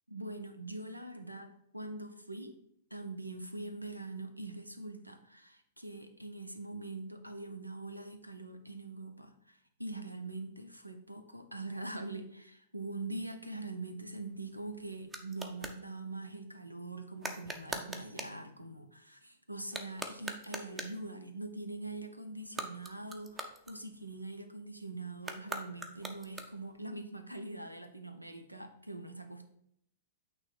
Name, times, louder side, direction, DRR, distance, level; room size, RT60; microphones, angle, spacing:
voice 1, 0.1-2.5 2.9-29.5, right 2 dB, 90° right, 9 dB, 0.6 m, -43 dB
sound 1, 14.1-15.8 17.2-18.4 19.6-21.1 22.4-24.2 25.2-26.8, right 2 dB, 15° right, 0.6 m, -43 dB
8.7 x 3.1 x 4.4 m, 0.74 s
figure-of-eight pair, 105°, 0 cm